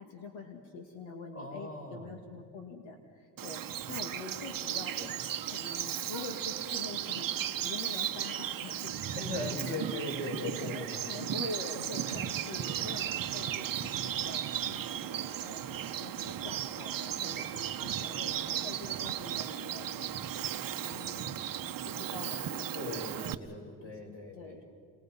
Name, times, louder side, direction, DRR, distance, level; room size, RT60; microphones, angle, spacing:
voice 1, 0.0-5.1 5.4-9.8 10.2-10.3 10.6-20.2 20.9-21.5 21.8-23.4 23.8-24.6, left 3 dB, 65° left, 3 dB, 2.5 m, -45 dB
voice 2, 1.3-2.2 9.1-11.1 12.5-12.9 22.5-24.6, left 2 dB, 25° left, 1 dB, 5.8 m, -39 dB
Bird vocalization bird call bird song, 3.4-23.3, right 10 dB, 45° right, 1.0 m, -36 dB
29.5 x 21.5 x 5.5 m, 2.3 s
cardioid pair, 95°, 49 cm